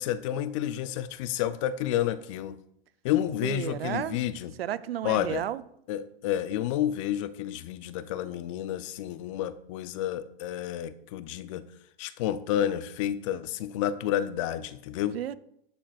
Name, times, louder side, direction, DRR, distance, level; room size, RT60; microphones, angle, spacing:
voice 1, 0.0-2.6 3.0-4.5 5.0-5.5 5.9-11.7 12.0-15.2, left 11 dB, 35° left, 0.4 m, -30 dB
voice 2, 3.4-4.2 4.6-5.6 15.1-15.3, right 11 dB, 85° right, 0.6 m, -32 dB
11.0 x 7.4 x 2.4 m
hypercardioid pair, 140°, 29 cm